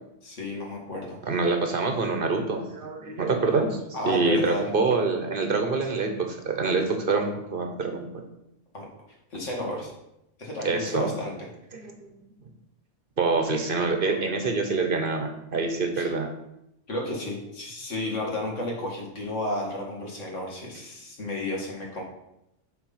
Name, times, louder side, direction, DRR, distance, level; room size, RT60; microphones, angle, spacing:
voice 1, 0.2-1.2 3.9-4.7 8.7-8.9 9.3-9.9 10.4-11.3 16.0-16.1 16.9-22.0, left 1 dB, 75° left, -2 dB, 2.2 m, -32 dB
voice 2, 1.2-3.8 4.0-8.2 10.6-11.1 11.7-12.2 13.2-16.3, right 3 dB, 50° right, 4 dB, 1.0 m, -26 dB
7.5 x 4.0 x 5.6 m, 0.83 s
omnidirectional pair, 1.3 m